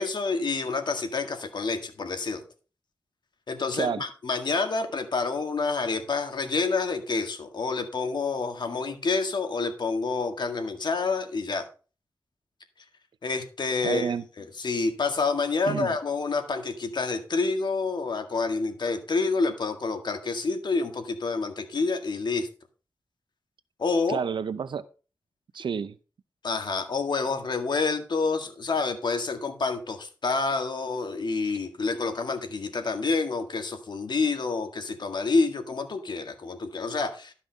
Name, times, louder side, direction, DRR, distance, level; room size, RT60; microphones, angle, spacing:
voice 1, 0.0-2.4 3.5-11.6 13.2-22.5 23.8-24.2 26.4-37.3, left 4 dB, 70° left, 1.9 m, -28 dB
voice 2, 13.8-14.2 15.7-15.9 24.1-24.8 25.5-26.0, right 6 dB, 85° right, 0.6 m, -29 dB
12.5 x 5.5 x 5.2 m
cardioid pair, 65°, 8 cm